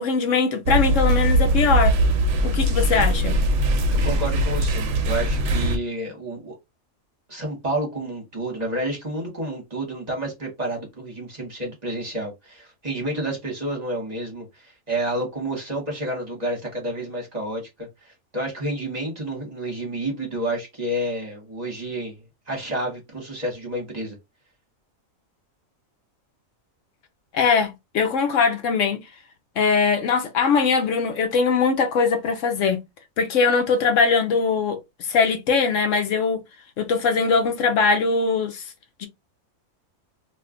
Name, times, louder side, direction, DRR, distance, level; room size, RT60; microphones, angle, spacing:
voice 1, 0.0-2.0 2.4-3.4 27.3-29.0 29.6-32.8 33.2-34.8 35.1-36.4 36.8-38.7 39.0-39.1, left 5 dB, 75° left, 1.0 m, -21 dB
sound 1, 0.7-5.8, right 1 dB, 70° right, 0.9 m, -21 dB
voice 2, 3.9-6.5 7.3-22.1 22.5-24.2, right 1 dB, 35° right, 1.1 m, -30 dB
2.6 x 2.3 x 3.6 m
omnidirectional pair, 1.4 m